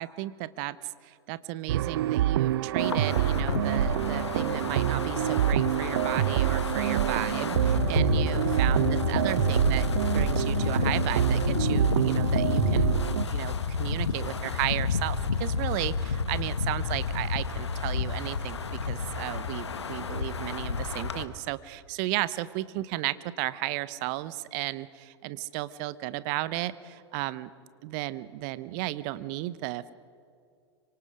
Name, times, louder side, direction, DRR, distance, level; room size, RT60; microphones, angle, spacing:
voice 1, 0.0-27.5 27.8-29.9, right 17 dB, 40° right, 16 dB, 0.9 m, -34 dB
sound 1, 1.7-13.2, right 13 dB, 60° right, 0.4 m, -26 dB
Wind, 2.8-21.2, left 5 dB, 75° left, 1.3 m, -30 dB
25.5 x 24.5 x 5.1 m, 2.3 s
figure-of-eight pair, 100°, 14 cm